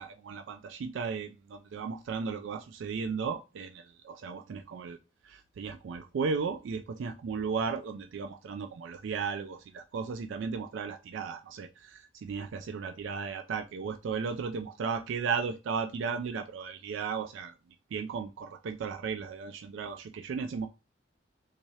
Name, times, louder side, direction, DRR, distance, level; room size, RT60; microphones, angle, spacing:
voice 1, 0.0-5.0 5.2-17.5 17.9-20.7, right 5 dB, 70° right, 7 dB, 0.3 m, -35 dB
3.6 x 2.8 x 3.0 m, 0.28 s
head